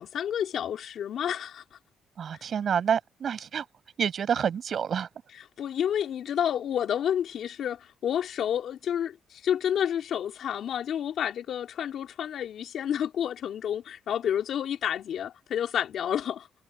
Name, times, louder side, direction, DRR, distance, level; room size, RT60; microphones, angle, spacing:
voice 1, 0.0-1.6 5.6-16.5, left 9 dB, 70° left, 3.8 m, -30 dB
voice 2, 2.2-3.6 4.0-5.1, right 7 dB, 55° right, 6.3 m, -28 dB
cardioid pair, 90°, 0 cm